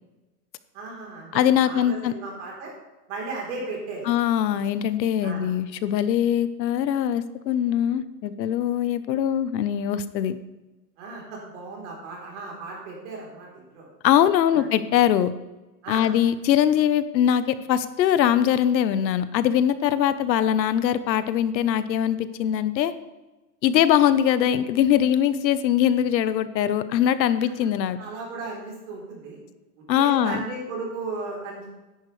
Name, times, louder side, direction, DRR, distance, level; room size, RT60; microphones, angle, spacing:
voice 1, 0.7-1.3 1.6-2.7 3.1-4.1 5.2-5.5 11.0-13.9 14.5-14.7 15.8-16.1 27.4-27.7 28.0-29.4 30.0-31.7, right 3 dB, 45° right, -2 dB, 3.9 m, -35 dB
voice 2, 1.3-2.1 4.0-10.4 14.0-15.3 15.9-22.9 23.6-28.0 29.9-30.4, left 10 dB, 85° left, 13 dB, 1.0 m, -22 dB
13.5 x 10.5 x 3.3 m, 1.1 s
supercardioid pair, 175°, 50 cm